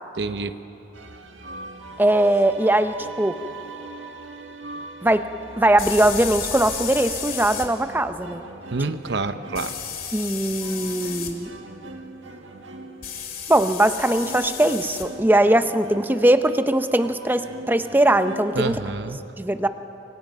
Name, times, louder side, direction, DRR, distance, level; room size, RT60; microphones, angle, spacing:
voice 1, 0.2-0.6 8.7-9.8 18.5-19.2, right 3 dB, 65° right, 10 dB, 0.8 m, -27 dB
sound 1, 0.9-19.0, right 3 dB, 85° right, 1.7 m, -41 dB
voice 2, 2.0-3.4 5.0-5.2 5.6-8.4 10.1-11.5 13.5-18.8 19.4-19.7, right 1 dB, 10° right, 10 dB, 0.6 m, -20 dB
sound 2, 2.3-2.4 5.8-7.7 9.5-11.3 13.0-15.1, left 8 dB, 50° left, 2.3 m, -33 dB
28.0 x 24.0 x 5.3 m, 3.0 s
head